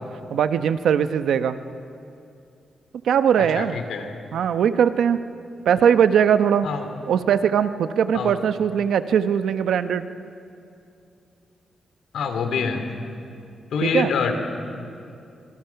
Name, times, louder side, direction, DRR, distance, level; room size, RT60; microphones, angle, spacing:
voice 1, 0.3-1.6 3.0-3.8 4.3-5.2 5.7-6.7 7.1-10.1 13.8-14.1, right 8 dB, 85° right, 10 dB, 1.0 m, -20 dB
voice 2, 3.4-4.1 6.6-6.8 8.1-8.3 12.1-12.9 13.7-14.3, left 6 dB, 90° left, 6 dB, 2.8 m, -25 dB
29.0 x 26.0 x 5.9 m, 2.5 s
cardioid pair, 115°, 0 cm